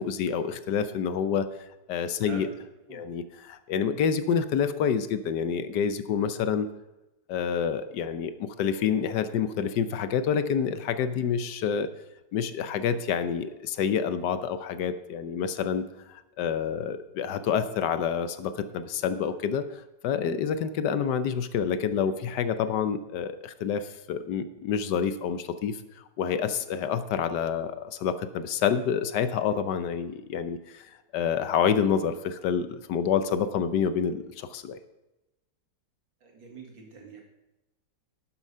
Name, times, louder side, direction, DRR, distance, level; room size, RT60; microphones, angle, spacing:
voice 1, 0.0-1.5 1.9-2.5 2.9-6.7 7.3-11.9 12.3-34.8, left 7 dB, 70° left, 11 dB, 1.2 m, -28 dB
voice 2, 36.2-37.2, right 4 dB, 85° right, 0 dB, 2.8 m, -45 dB
12.0 x 7.2 x 5.5 m, 0.98 s
omnidirectional pair, 2.0 m